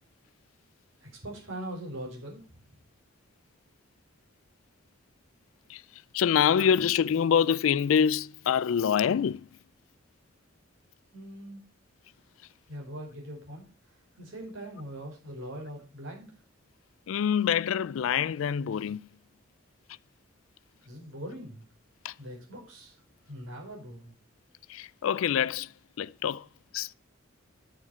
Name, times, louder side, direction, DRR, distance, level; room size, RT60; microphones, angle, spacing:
voice 1, 1.0-2.4 11.1-11.6 12.7-16.3 20.8-21.7 22.2-23.0 23.2-24.1, right 1 dB, 70° right, 5.3 m, -41 dB
voice 2, 5.7-9.5 17.1-19.1 22.0-22.2 24.7-26.5 26.7-26.9, left 8 dB, 80° left, 0.4 m, -26 dB
10.0 x 7.3 x 4.3 m
head